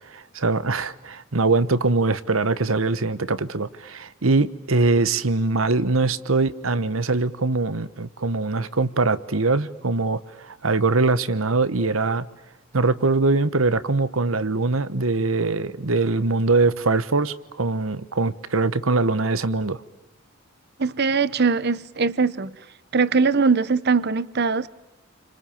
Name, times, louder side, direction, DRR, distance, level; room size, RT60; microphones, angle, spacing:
voice 1, 0.1-12.2 12.7-19.8, right 3 dB, 75° right, 1.2 m, -22 dB
voice 2, 20.8-22.6 22.9-24.7, right 4 dB, 55° right, 0.9 m, -21 dB
29.5 x 25.5 x 7.2 m
head